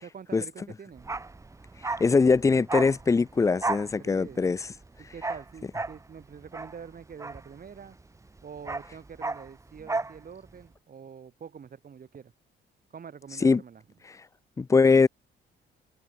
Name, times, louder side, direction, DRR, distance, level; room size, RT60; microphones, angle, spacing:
voice 1, 0.0-1.2 4.0-4.4 5.0-8.0 8.4-12.3 12.9-13.8, right 7 dB, 45° right, 4.1 m, -45 dB
Bark, 1.0-8.0 8.3-10.2 10.5-10.6, right 3 dB, 15° right, 0.8 m, -34 dB
voice 2, 2.0-4.6 13.4-13.6 14.6-15.1, left 4 dB, 15° left, 0.3 m, -21 dB
cardioid pair, 90°, 20 cm